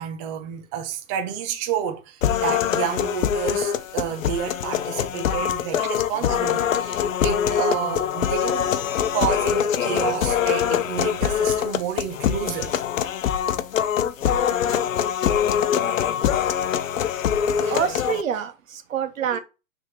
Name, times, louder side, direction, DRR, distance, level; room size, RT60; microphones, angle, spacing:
voice 1, 0.0-8.7 9.1-12.8 19.3-19.4, right 9 dB, 25° right, 0.7 m, -30 dB
sound 1, 2.2-18.2, left 9 dB, 75° left, 0.8 m, -23 dB
voice 2, 17.6-19.4, right 8 dB, 75° right, 1.4 m, -27 dB
6.3 x 3.6 x 4.4 m
hypercardioid pair, 150°, 40 cm